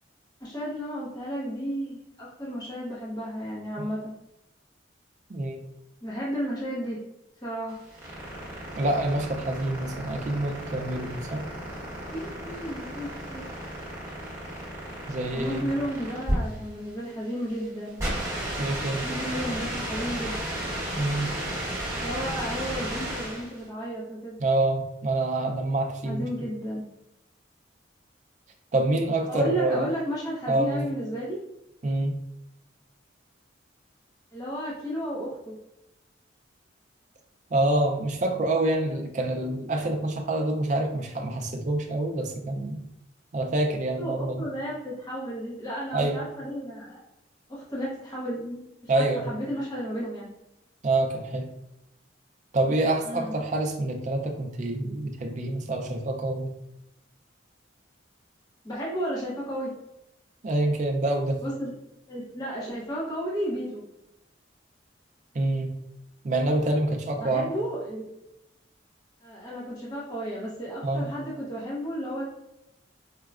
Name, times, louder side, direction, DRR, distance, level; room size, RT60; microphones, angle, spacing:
voice 1, 0.4-4.1 6.0-7.0 7.4-7.8 12.1-13.5 15.3-18.0 19.0-20.4 22.0-24.3 26.0-26.8 29.3-31.4 34.3-35.6 44.0-47.0 47.5-48.7 48.9-50.3 53.1-53.3 58.6-59.7 61.4-61.7 62.1-63.8 67.2-68.1 69.2-72.2, equal, 20° left, -7 dB, 0.7 m, -33 dB
voice 2, 5.3-5.6 8.8-11.5 15.1-15.7 18.6-19.0 21.0-21.4 24.4-26.3 28.7-29.9 30.5-30.9 31.8-32.2 37.5-42.8 43.3-44.4 45.9-46.2 48.9-49.3 50.8-51.5 52.5-56.5 60.4-61.4 65.3-65.8 66.2-67.5 70.8-71.1, right 2 dB, 40° right, 3 dB, 0.4 m, -26 dB
sound 1, 7.7-23.6, right 1 dB, 15° right, 1.0 m, -33 dB
4.5 x 2.1 x 2.4 m, 0.86 s
head